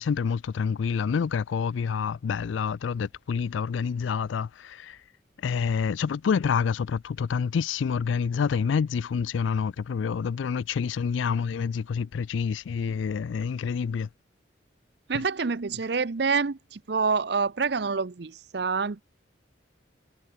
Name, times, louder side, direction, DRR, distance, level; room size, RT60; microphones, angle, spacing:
voice 1, 0.0-5.0 5.4-14.1 15.1-15.2, left 6 dB, 80° left, 0.4 m, -27 dB
voice 2, 15.1-19.0, right 5 dB, 60° right, 0.6 m, -27 dB
head